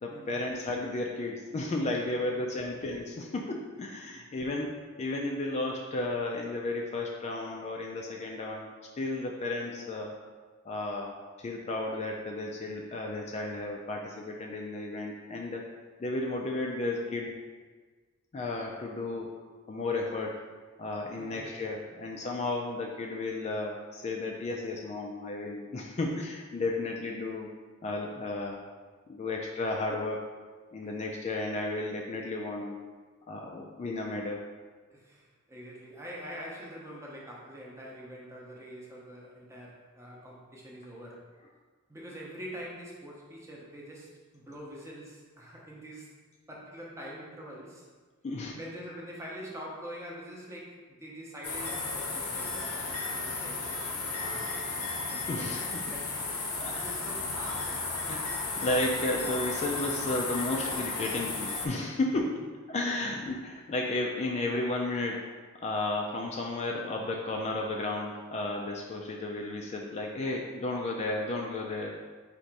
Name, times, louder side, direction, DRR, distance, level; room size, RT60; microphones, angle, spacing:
voice 1, 0.0-10.2 10.6-15.6 16.0-17.3 18.3-19.3 19.7-20.5 20.8-27.5 27.8-28.6 29.1-30.3 30.7-32.8 33.3-34.4 48.2-48.6 55.3-55.9 56.6-56.8 58.1-72.1, left 2 dB, 30° left, 0 dB, 0.3 m, -33 dB
voice 2, 2.3-2.7 21.1-21.5 30.8-30.9 34.9-41.3 41.9-46.1 46.5-47.9 48.5-53.9 54.2-54.8 55.1-56.4 56.8-58.0 62.2-62.3 62.8-63.1, equal, 15° right, -3 dB, 0.7 m, -45 dB
sound 1, 51.4-61.7, left 3 dB, 85° left, 0.7 m, -34 dB
4.0 x 2.5 x 4.5 m, 1.4 s
head